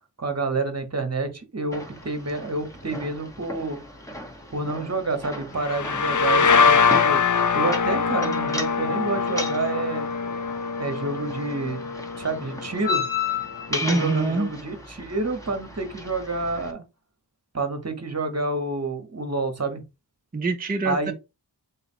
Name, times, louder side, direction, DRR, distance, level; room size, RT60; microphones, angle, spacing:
voice 1, 0.2-3.8 4.5-7.2 7.5-10.1 10.8-13.0 13.7-16.8 17.5-19.8 20.8-21.1, right 3 dB, 35° right, 1.1 m, -28 dB
sound 1, 1.7-16.7, left 4 dB, 5° left, 1.0 m, -35 dB
sound 2, 5.6-13.2, left 5 dB, 45° left, 0.4 m, -23 dB
voice 2, 13.8-14.5 20.3-21.1, right 3 dB, 20° right, 0.6 m, -24 dB
4.0 x 2.4 x 4.2 m
wide cardioid pair, 65°, 43 cm